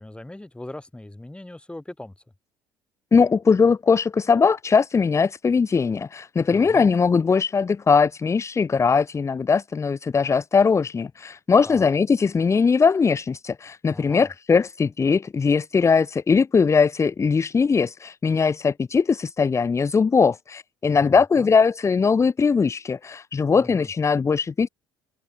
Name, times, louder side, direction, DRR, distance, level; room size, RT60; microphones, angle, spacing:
voice 1, 0.0-2.1 6.5-6.9 11.7-11.9 13.9-14.3 21.0-21.5 23.5-23.9, left 1 dB, 10° left, 4.2 m, -40 dB
voice 2, 3.1-24.7, left 5 dB, 25° left, 0.7 m, -20 dB
open air
figure-of-eight pair, 55°, 12 cm